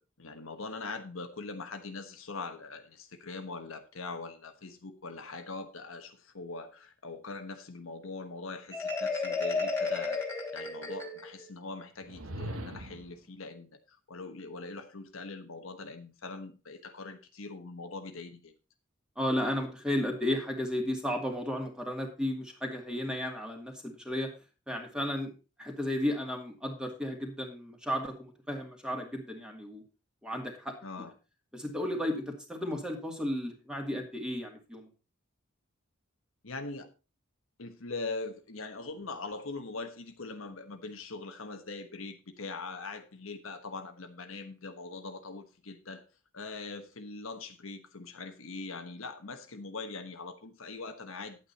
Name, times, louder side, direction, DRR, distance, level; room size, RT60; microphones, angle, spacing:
voice 1, 0.2-10.2 10.5-18.5 30.8-31.1 36.4-36.9 37.6-46.1 46.3-51.4, left 3 dB, 75° left, 1.3 m, -42 dB
Marimba xylophone, 8.7-11.5, left 4 dB, 15° left, 2.6 m, -32 dB
sound 1, 12.0-13.2, right 1 dB, 85° right, 1.6 m, -40 dB
voice 2, 19.2-24.3 24.7-25.3 25.6-29.8 30.2-30.8 31.5-34.9, left 1 dB, 5° right, 2.3 m, -33 dB
10.5 x 8.7 x 4.1 m
head